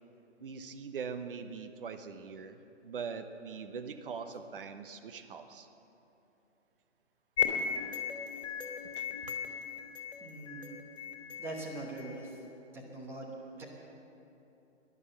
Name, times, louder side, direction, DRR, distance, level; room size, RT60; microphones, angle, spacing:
voice 1, 0.4-2.6 2.8-5.7 9.0-9.3, right 5 dB, 45° right, 8 dB, 1.0 m, -42 dB
sound 1, 7.4-12.4, left 7 dB, 60° left, 2.7 m, -36 dB
voice 2, 10.2-10.8 11.4-12.4 12.7-13.6, right 2 dB, 5° right, -2 dB, 1.1 m, -42 dB
13.0 x 11.0 x 7.8 m, 2.9 s
hypercardioid pair, 150°, 37 cm